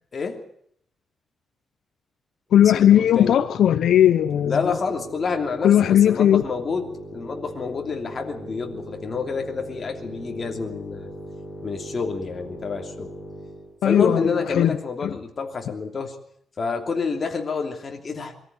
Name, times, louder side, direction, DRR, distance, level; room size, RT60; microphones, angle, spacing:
voice 1, 0.1-0.4 2.6-3.4 4.4-11.1 11.6-13.1 13.8-16.2 16.6-18.3, left 4 dB, 30° left, 3.0 m, -28 dB
voice 2, 2.5-4.7 5.6-6.4 13.8-14.8, left 10 dB, 80° left, 0.8 m, -17 dB
sound 1, 2.7-13.7, right 1 dB, ahead, 7.1 m, -40 dB
23.0 x 14.0 x 9.7 m
wide cardioid pair, 165°, 0 cm